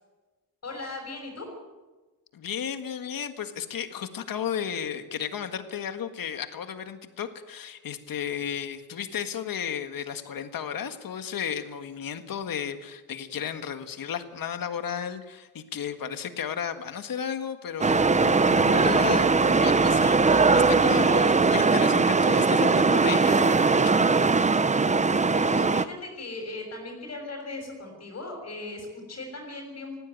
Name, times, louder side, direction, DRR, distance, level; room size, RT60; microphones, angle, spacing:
voice 1, 0.6-1.5 25.1-30.0, left 2 dB, 45° left, -1 dB, 6.0 m, -38 dB
voice 2, 2.3-24.0, left 8 dB, 65° left, 8 dB, 1.8 m, -33 dB
sound 1, 17.8-25.9, right 4 dB, 20° right, 0.7 m, -20 dB
19.5 x 15.5 x 9.3 m, 1.2 s
wide cardioid pair, 125°, 36 cm